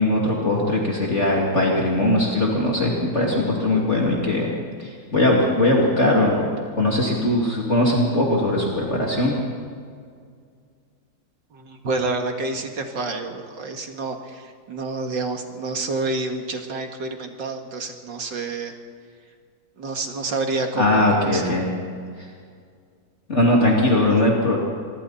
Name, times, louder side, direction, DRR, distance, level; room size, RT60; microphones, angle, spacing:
voice 1, 0.0-4.5 4.8-9.4 20.5-21.7 23.3-24.6, left 1 dB, 35° left, -3 dB, 2.9 m, -20 dB
voice 2, 11.8-14.2 14.7-18.7 19.8-21.0 21.3-21.4, right 3 dB, 70° right, 4 dB, 2.6 m, -28 dB
26.0 x 23.5 x 4.3 m, 2.1 s
omnidirectional pair, 2.1 m